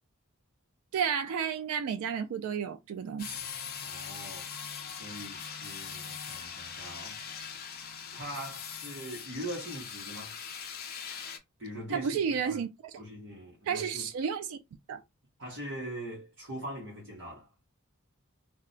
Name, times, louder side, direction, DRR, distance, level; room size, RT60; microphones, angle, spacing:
voice 1, 0.9-3.4 11.9-12.7 13.7-14.6 14.9-15.0, right 7 dB, 70° right, 0.3 m, -31 dB
sound 1, 3.2-11.4, left 7 dB, 45° left, 0.5 m, -41 dB
voice 2, 3.8-4.5 4.8-7.2 8.1-10.4 11.6-12.6 13.0-14.1 15.4-17.5, right 1 dB, 55° right, 0.8 m, -42 dB
2.3 x 2.0 x 3.7 m
head